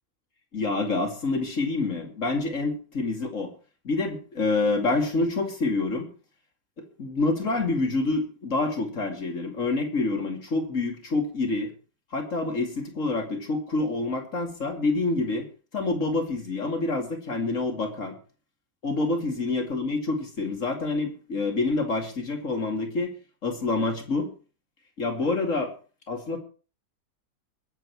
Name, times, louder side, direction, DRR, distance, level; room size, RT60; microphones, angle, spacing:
voice 1, 0.5-3.5 3.8-6.1 6.8-11.7 12.1-15.5 15.7-18.1 18.8-23.1 23.4-24.3 25.0-25.7 26.1-26.4, left 3 dB, 45° left, 3 dB, 2.9 m, -27 dB
21.5 x 7.9 x 4.7 m, 0.38 s
omnidirectional pair, 1.9 m